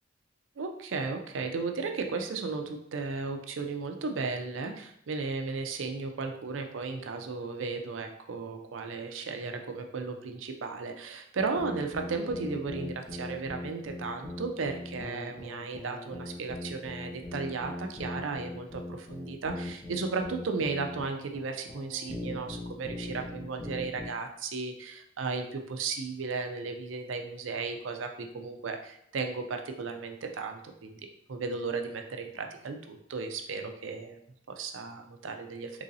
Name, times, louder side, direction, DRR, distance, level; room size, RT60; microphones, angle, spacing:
voice 1, 0.6-31.0 31.3-34.2 34.5-35.7, right 4 dB, 75° right, 5 dB, 0.5 m, -35 dB
sound 1, 11.4-24.1, left 1 dB, 15° left, 0.6 m, -40 dB
3.9 x 3.1 x 2.7 m, 0.71 s
head